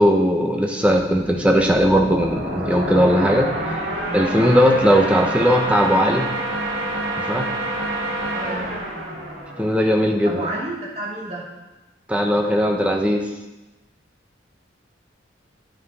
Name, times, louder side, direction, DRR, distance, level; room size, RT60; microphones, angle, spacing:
voice 1, 0.0-3.5 4.1-6.3 7.2-7.5 9.6-10.4 12.1-13.2, equal, 5° right, 1 dB, 0.9 m, -18 dB
sound 1, 1.1-10.4, right 1 dB, 65° right, 2.6 m, -28 dB
voice 2, 8.3-8.7 10.2-11.5, right 1 dB, 35° right, -5 dB, 2.6 m, -30 dB
9.5 x 7.6 x 4.2 m, 1.0 s
head